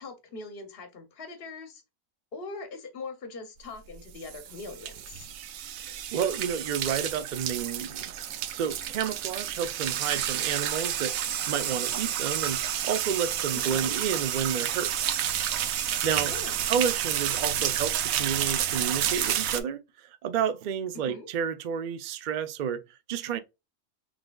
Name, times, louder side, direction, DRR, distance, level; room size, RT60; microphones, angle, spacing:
voice 1, 0.0-1.8 2.3-5.3 13.7-13.9 16.2-16.7 20.9-21.3, left 3 dB, 50° left, 0.9 m, -42 dB
sound 1, 3.9-19.6, right 10 dB, 85° right, 1.0 m, -30 dB
voice 2, 5.8-8.2 8.5-11.1 11.5-14.9 16.0-16.3 16.6-22.8 23.1-23.4, right 8 dB, 65° right, 0.4 m, -31 dB
6.0 x 3.3 x 2.3 m
omnidirectional pair, 1.4 m